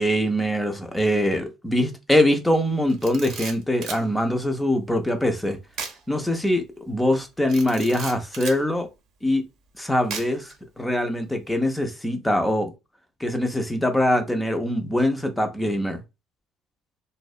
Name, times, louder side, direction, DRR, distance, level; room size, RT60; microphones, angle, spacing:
voice 1, 0.0-5.6 6.1-8.9 9.2-9.5 9.8-12.7 13.2-16.0, left 1 dB, 5° left, 0.4 m, -23 dB
Camera, 2.9-4.0 5.7-6.0 6.4-6.5 7.5-8.6 10.1-10.5, right 5 dB, 55° right, 0.6 m, -35 dB
2.6 x 2.0 x 2.4 m
cardioid pair, 155°, 0 cm